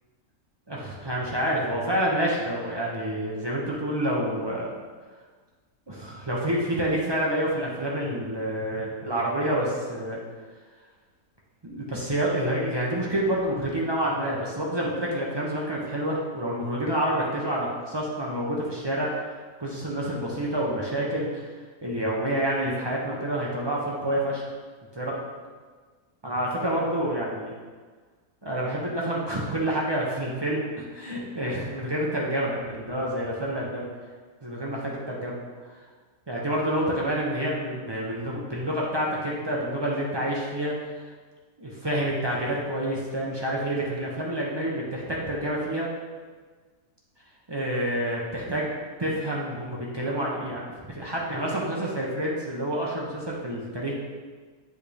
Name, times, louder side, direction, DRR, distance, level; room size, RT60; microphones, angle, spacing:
voice 1, 0.7-4.7 5.9-10.2 11.6-21.5 21.8-24.4 24.9-25.2 26.2-27.5 28.4-33.9 34.4-35.3 36.3-40.7 41.6-45.9 47.5-48.7 49.0-53.9, right 1 dB, 40° right, -4 dB, 0.3 m, -28 dB
8.3 x 3.5 x 3.3 m, 1.5 s
omnidirectional pair, 1.7 m